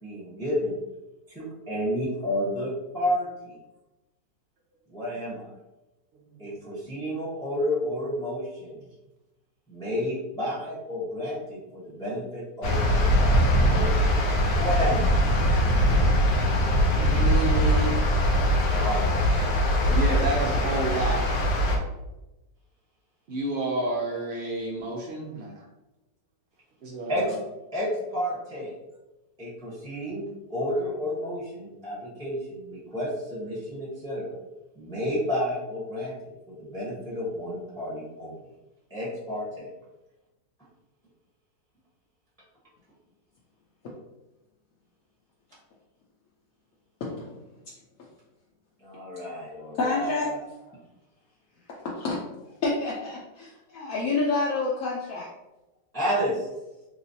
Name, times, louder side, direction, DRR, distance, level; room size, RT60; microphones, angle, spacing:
voice 1, 0.0-0.8 1.3-2.7 2.9-3.3 4.9-5.5 6.4-8.8 9.7-14.0 14.5-15.1 18.7-20.2 27.1-27.4 27.7-28.7 29.4-34.4 34.7-36.1 36.5-38.4 38.9-39.7 48.8-50.4 55.9-56.5, equal, 5° left, -6 dB, 0.6 m, -31 dB
sound 1, 12.6-21.8, equal, 85° left, 1.3 m, -22 dB
voice 2, 16.2-18.0 19.9-21.2 23.3-25.6 26.8-27.3, right 2 dB, 80° right, -2 dB, 0.5 m, -30 dB
voice 3, 47.0-47.4 49.8-50.3 50.6-50.7 51.9-52.2 52.6-55.3, left 3 dB, 70° left, -4 dB, 0.8 m, -28 dB
3.3 x 3.0 x 2.7 m, 1.0 s
omnidirectional pair, 1.9 m